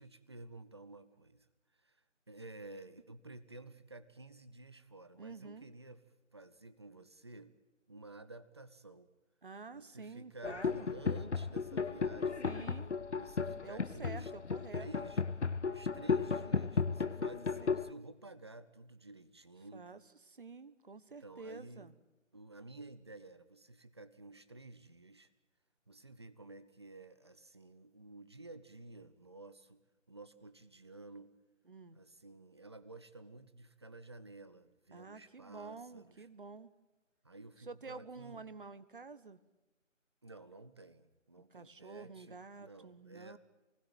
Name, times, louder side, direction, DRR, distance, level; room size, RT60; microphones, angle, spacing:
voice 1, 0.0-6.0 6.3-7.6 7.9-9.1 9.7-12.4 13.1-14.3 14.7-15.2 15.6-19.9 21.2-21.9 22.3-25.3 25.9-29.8 30.1-31.3 31.9-36.3 37.2-38.4 40.2-43.4, right 2 dB, 20° right, 12 dB, 0.9 m, -52 dB
voice 2, 5.2-5.7 9.4-10.9 12.4-12.9 13.6-15.1 19.7-20.0 20.3-21.9 31.7-32.0 34.9-36.7 37.7-39.4 41.5-43.4, right 4 dB, 40° right, 14 dB, 1.5 m, -49 dB
sound 1, 10.4-17.9, left 5 dB, 60° left, 1.0 m, -35 dB
28.5 x 20.5 x 9.1 m, 1.0 s
figure-of-eight pair, 160°, 39 cm